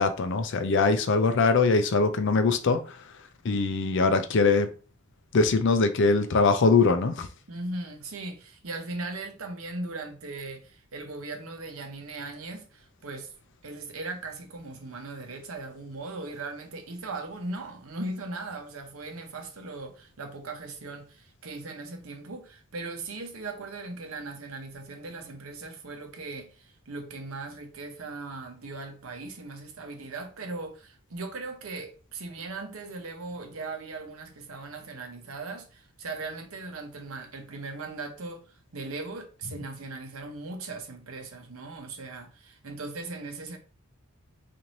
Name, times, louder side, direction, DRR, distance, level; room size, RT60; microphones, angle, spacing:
voice 1, 0.0-3.0 3.4-4.7 5.3-7.3, left 4 dB, 55° left, 0.4 m, -22 dB
voice 2, 7.5-13.3 13.6-38.4 38.7-43.6, right 3 dB, 70° right, 0.8 m, -38 dB
3.1 x 2.6 x 4.0 m
head